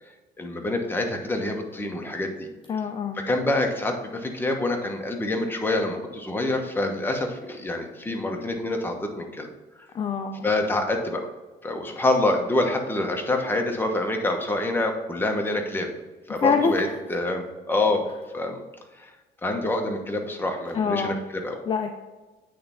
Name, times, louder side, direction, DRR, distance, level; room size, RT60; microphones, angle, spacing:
voice 1, 0.4-2.5 3.1-9.5 10.4-11.3 11.6-15.9 16.3-18.1 18.3-18.6 19.0-19.1 19.4-21.6, left 2 dB, 10° left, 3 dB, 1.1 m, -26 dB
voice 2, 2.7-3.2 9.9-10.5 16.4-17.0 20.7-21.3 21.7-21.9, left 5 dB, 30° left, 6 dB, 0.5 m, -25 dB
8.6 x 3.4 x 5.6 m, 1.2 s
cardioid pair, 110°, 17 cm